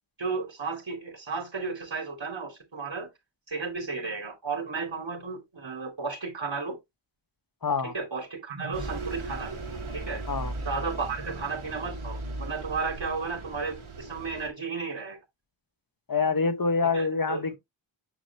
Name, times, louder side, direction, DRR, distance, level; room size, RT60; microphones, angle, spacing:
voice 1, 0.2-3.1 3.5-6.8 7.8-9.6 9.9-10.2 10.6-15.2 16.9-17.5, right 4 dB, 65° right, 3.2 m, -33 dB
voice 2, 7.6-7.9 10.3-10.5 16.1-17.6, left 4 dB, 45° left, 1.5 m, -26 dB
Bus, 8.7-14.5, right 2 dB, 90° right, 2.3 m, -37 dB
9.0 x 5.0 x 3.0 m
wide cardioid pair, 60°, 47 cm